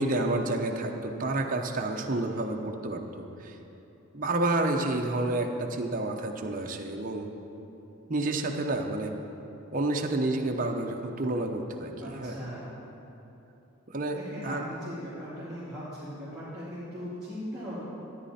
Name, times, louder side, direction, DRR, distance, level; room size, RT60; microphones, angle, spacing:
voice 1, 0.0-3.6 4.1-7.3 8.1-9.1 9.7-12.4 13.9-14.2 14.4-14.7, right 2 dB, 40° right, 2 dB, 0.8 m, -29 dB
voice 2, 12.0-12.7 14.1-17.8, equal, 5° right, -15 dB, 2.6 m, -39 dB
13.5 x 10.0 x 4.3 m, 3.0 s
head